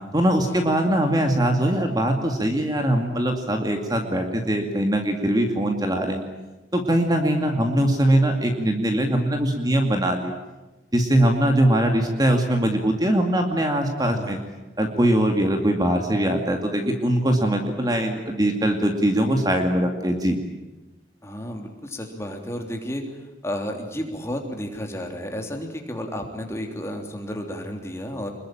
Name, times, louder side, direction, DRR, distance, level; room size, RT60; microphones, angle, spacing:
voice 1, 0.1-6.2 6.7-10.3 10.9-14.4 14.8-20.4, right 1 dB, 20° right, 4 dB, 2.3 m, -21 dB
voice 2, 14.0-14.4 21.2-28.3, equal, 15° left, 2 dB, 3.3 m, -32 dB
26.5 x 21.5 x 9.0 m, 1.1 s
head